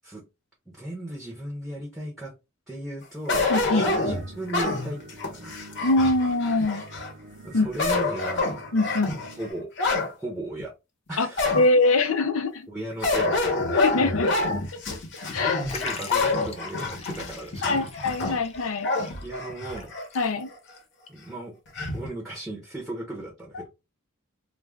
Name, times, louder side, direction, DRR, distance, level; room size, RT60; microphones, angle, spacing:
voice 1, 0.7-2.3 2.7-5.6 7.4-8.6 9.3-9.7 10.2-10.7 11.1-11.5 12.7-13.8 15.7-17.9 19.2-19.9 21.1-21.5 21.9-23.7, right 1 dB, ahead, 0.7 m, -36 dB
sound 1, 3.3-7.1 7.6-10.1 10.6-10.7 11.4-12.0 13.0-20.1 20.5-20.6 21.7-22.1, left 3 dB, 60° left, 0.9 m, -27 dB
voice 2, 3.5-3.9 5.8-6.8 7.5-7.7 8.7-9.2 11.2-11.3 11.5-12.7 13.7-14.4 14.7-15.0 15.3-15.8 17.6-18.9 20.1-20.5 23.5-23.7, left 2 dB, 75° left, 0.6 m, -23 dB
sound 2, 3.5-9.5, right 2 dB, 60° right, 0.6 m, -46 dB
Liquid, 15.7-20.8 21.1-21.2 22.1-22.2, left 4 dB, 30° left, 0.5 m, -42 dB
2.4 x 2.3 x 3.2 m
head